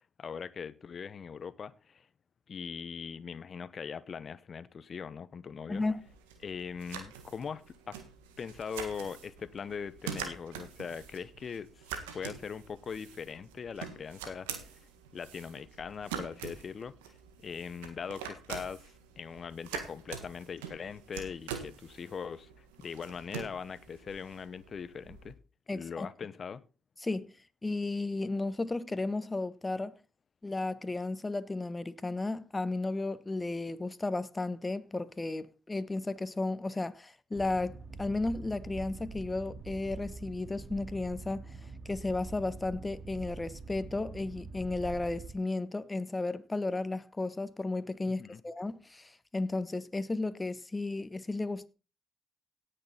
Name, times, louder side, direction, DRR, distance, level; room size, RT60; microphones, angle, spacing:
voice 1, 0.2-2.1 2.5-5.8 6.4-8.0 8.4-14.8 15.1-17.1 17.4-25.4 25.7-26.6 48.2-48.4, left 6 dB, 50° left, 0.9 m, -41 dB
voice 2, 5.7-6.0 25.7-26.1 27.0-27.3 27.6-29.9 30.4-37.7 38.0-41.4 41.8-51.7, left 2 dB, 25° left, 1.2 m, -34 dB
sound 1, 5.7-25.3, right 7 dB, 90° right, 1.6 m, -45 dB
Boat Water vehicle, 37.3-45.3, right 4 dB, 55° right, 2.4 m, -45 dB
17.5 x 6.7 x 3.9 m
hypercardioid pair, 45°, 0 cm